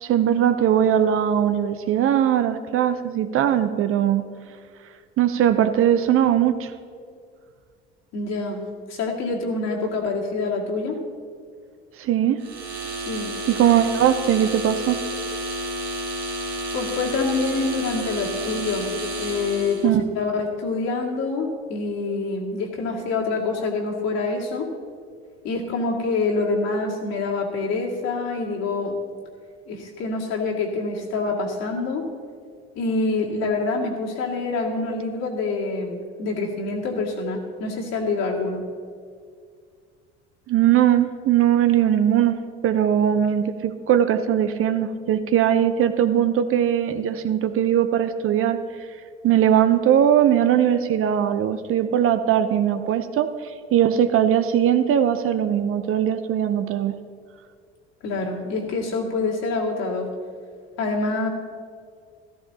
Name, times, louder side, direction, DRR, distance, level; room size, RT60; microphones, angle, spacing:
voice 1, 0.0-4.3 5.2-6.7 12.0-12.4 13.5-15.0 19.8-20.0 40.5-42.4 42.6-48.6 49.2-53.3 53.7-56.9, right 10 dB, 45° right, 10 dB, 0.7 m, -20 dB
voice 2, 8.1-11.0 13.1-13.3 16.7-18.9 19.2-24.7 25.4-29.0 29.7-32.1 32.8-38.6 58.0-60.1 60.8-61.3, left 3 dB, 55° left, -1 dB, 2.3 m, -26 dB
sound 1, 12.4-19.9, right 1 dB, 85° right, 2.8 m, -30 dB
14.0 x 14.0 x 2.9 m, 2.1 s
figure-of-eight pair, 60°, 31 cm